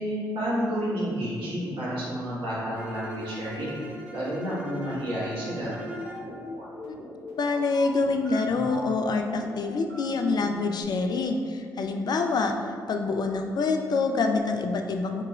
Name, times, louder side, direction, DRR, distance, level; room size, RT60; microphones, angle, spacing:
voice 1, 0.0-3.8 4.1-5.8, equal, 60° right, -8 dB, 1.4 m, -30 dB
Bowed string instrument, 2.7-6.3, right 1 dB, 15° right, 0.7 m, -41 dB
sound 1, 5.6-10.8, equal, 85° right, 0.9 m, -40 dB
voice 2, 7.4-15.2, left 3 dB, 45° left, 4 dB, 0.3 m, -26 dB
4.5 x 2.9 x 2.4 m, 2.2 s
hypercardioid pair, 40°, 10 cm